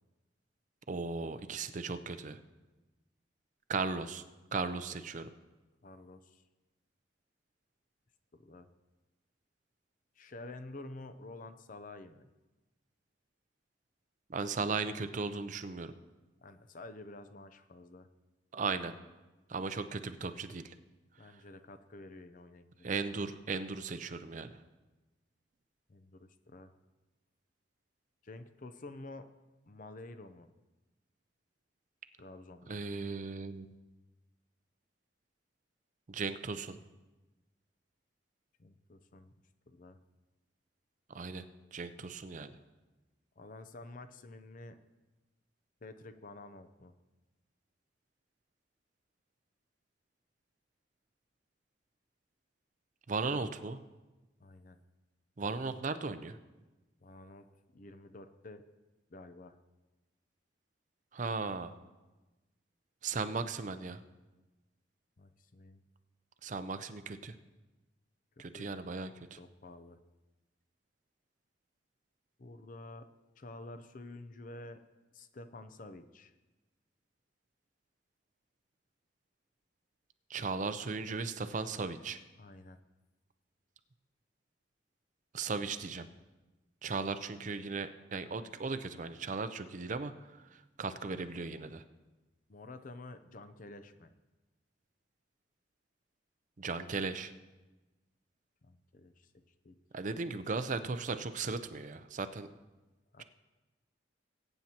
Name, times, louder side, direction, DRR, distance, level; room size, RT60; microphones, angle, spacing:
voice 1, 0.9-2.4 3.7-4.2 4.5-5.3 14.3-15.9 18.5-18.9 19.5-20.7 22.8-24.5 32.7-33.7 36.1-36.8 41.1-41.4 41.7-42.5 53.1-53.8 55.4-56.4 61.1-61.7 63.0-64.0 66.4-67.3 68.4-69.4 80.3-82.2 85.3-86.1 86.8-90.1 90.8-91.8 96.6-97.3 99.9-102.5, right 4 dB, 40° right, 11 dB, 0.5 m, -36 dB
voice 2, 5.8-6.4 8.3-8.7 10.2-12.3 16.4-18.1 21.2-22.9 25.9-26.7 28.2-29.4 29.7-30.5 32.2-32.8 38.6-39.3 39.7-40.0 43.4-44.8 45.8-46.9 54.4-54.8 57.0-57.5 57.7-58.6 59.1-59.6 65.2-65.8 68.4-70.0 72.4-73.1 73.4-74.8 75.1-76.3 82.4-82.8 92.5-94.1 98.6-99.8 103.1-103.2, left 2 dB, 45° left, 10 dB, 0.6 m, -50 dB
21.0 x 9.0 x 2.9 m, 1.1 s
head